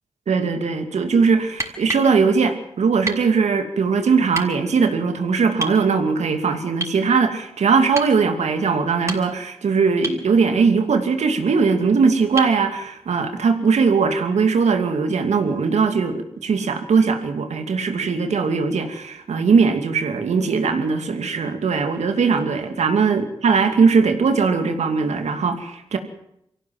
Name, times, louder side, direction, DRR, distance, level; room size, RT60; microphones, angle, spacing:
voice 1, 0.3-26.0, right 5 dB, 85° right, 6 dB, 2.6 m, -20 dB
sound 1, 1.5-2.1 3.0-3.3 4.3-4.5 5.6-5.8 6.8-7.0 7.9-8.2 8.9-9.5 10.0-10.3 12.4-12.6 14.4-14.5, right 1 dB, 25° right, 6.3 m, -29 dB
24.5 x 16.5 x 7.8 m, 0.78 s
cardioid pair, 40°, 11 cm